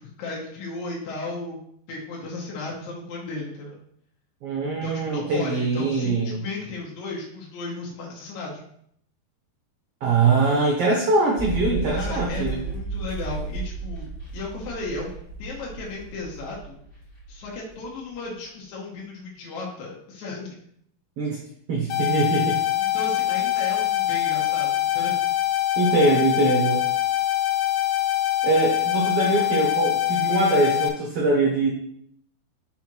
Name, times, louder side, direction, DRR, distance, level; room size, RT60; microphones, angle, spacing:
voice 1, 0.0-1.6 1.9-3.8 4.8-8.6 11.9-15.1 15.4-16.8 17.3-20.6 22.8-25.2, left 3 dB, 65° left, -3 dB, 2.2 m, -35 dB
voice 2, 4.4-6.4 10.0-12.6 21.2-21.4 21.7-22.6 25.8-26.8 28.4-31.7, right 3 dB, 75° right, -2 dB, 1.3 m, -22 dB
sound 1, 11.4-17.9 18.1-18.2, right 5 dB, 20° left, 2.7 m, -33 dB
sound 2, 21.9-30.9, left 14 dB, 80° left, 2.5 m, -24 dB
5.7 x 4.4 x 4.5 m, 0.69 s
omnidirectional pair, 4.3 m